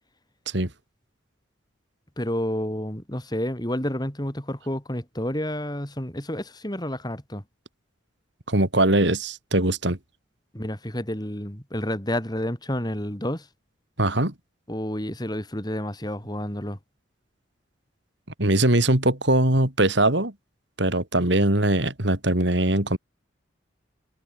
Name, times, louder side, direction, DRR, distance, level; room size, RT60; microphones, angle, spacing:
voice 1, 2.2-7.4 10.5-13.5 14.7-16.8, left 1 dB, 20° left, 4.3 m, -30 dB
voice 2, 8.5-10.0 14.0-14.3 18.4-20.3 20.8-23.0, right 1 dB, 65° right, 3.6 m, -21 dB
head